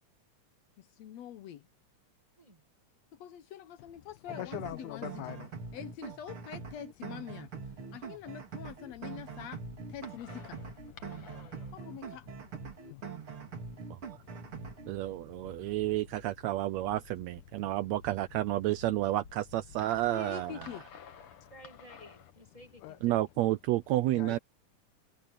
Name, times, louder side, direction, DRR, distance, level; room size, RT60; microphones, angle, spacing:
voice 1, 0.8-1.6 3.1-5.3 5.7-7.5 7.9-9.6 9.9-10.6 11.7-12.3 19.9-20.9, left 10 dB, 70° left, 1.9 m, -45 dB
voice 2, 4.3-5.5 11.2-11.6 12.8-15.8 21.3-21.5 22.8-23.0 24.1-24.4, left 14 dB, 85° left, 2.4 m, -46 dB
sound 1, 4.3-14.9, right 5 dB, 45° right, 3.3 m, -44 dB
sound 2, 8.9-22.3, left 6 dB, 50° left, 2.1 m, -54 dB
voice 3, 11.0-11.7 15.0-15.2 21.5-23.3, equal, 15° right, 1.5 m, -55 dB
voice 4, 14.9-20.7 23.0-24.4, right 15 dB, 80° right, 1.6 m, -30 dB
omnidirectional pair, 3.5 m